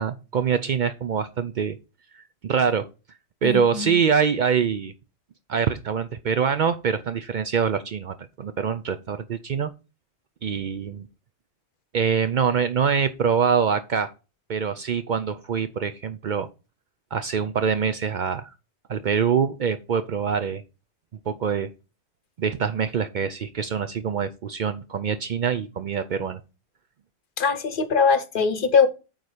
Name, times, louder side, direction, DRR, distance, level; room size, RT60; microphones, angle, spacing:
voice 1, 0.0-1.8 2.4-2.9 3.4-4.9 5.5-9.7 10.4-11.1 11.9-14.1 14.5-16.5 17.1-18.5 18.9-20.6 21.3-21.7 22.4-26.4, right 6 dB, 55° right, 0.6 m, -24 dB
voice 2, 3.4-4.0 27.4-28.9, left 5 dB, 55° left, 0.9 m, -21 dB
8.8 x 4.0 x 4.9 m
omnidirectional pair, 1.1 m